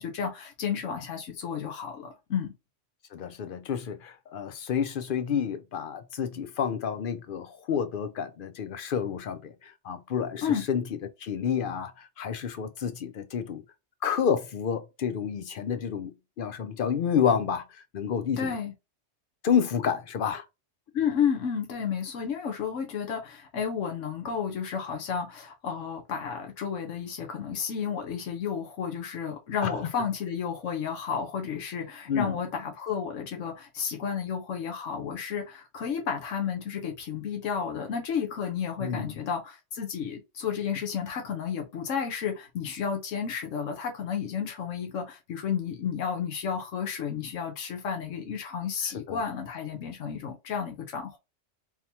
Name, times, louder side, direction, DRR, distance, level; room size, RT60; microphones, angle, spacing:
voice 1, 0.0-2.5 10.4-10.6 18.4-18.7 20.9-51.2, left 7 dB, 85° left, 1.2 m, -32 dB
voice 2, 3.1-10.8 11.2-13.6 14.0-18.6 19.4-20.5 29.6-29.7 32.1-32.4 38.8-39.2 48.9-49.2, left 7 dB, 60° left, 0.6 m, -29 dB
3.7 x 2.9 x 2.8 m
omnidirectional pair, 1.3 m